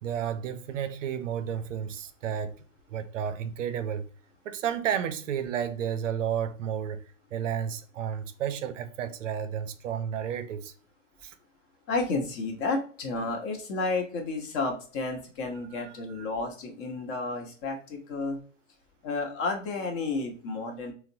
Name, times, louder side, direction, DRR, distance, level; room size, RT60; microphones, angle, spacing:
voice 1, 0.0-2.6 2.9-4.1 4.4-7.0 7.3-10.7 11.2-11.4 15.7-16.3, right 8 dB, 80° right, 0.6 m, -32 dB
voice 2, 11.9-18.4 19.0-20.9, left 3 dB, 45° left, 1.1 m, -31 dB
4.1 x 2.0 x 2.6 m
hypercardioid pair, 120°, 38 cm